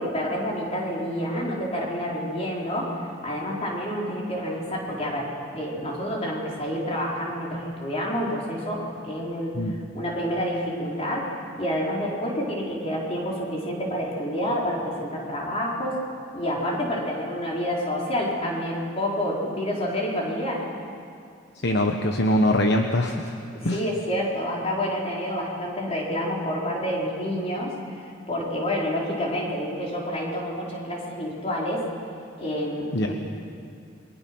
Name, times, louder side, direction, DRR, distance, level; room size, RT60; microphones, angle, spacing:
voice 1, 0.0-9.6 9.9-16.0 16.3-20.7 23.5-31.9 32.4-33.1, equal, 30° left, -3 dB, 4.7 m, -28 dB
voice 2, 21.6-23.4 23.6-23.8 32.9-33.1, left 1 dB, 55° left, 4 dB, 1.1 m, -23 dB
28.5 x 23.0 x 6.3 m, 2.4 s
head